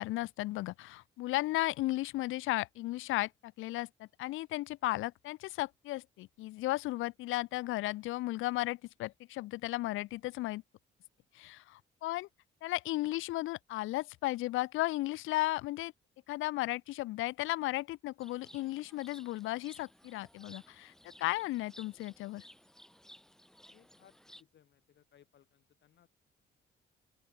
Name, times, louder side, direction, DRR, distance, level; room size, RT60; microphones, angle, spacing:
voice 1, 0.0-10.6 11.3-12.3 12.6-15.9 16.3-20.9 21.2-22.4, left 18 dB, 85° left, 0.6 m, -35 dB
sound 1, 18.2-24.4, equal, ahead, 5.4 m, -57 dB
voice 2, 23.6-26.1, left 10 dB, 65° left, 3.3 m, -65 dB
open air
cardioid pair, 90°, 20 cm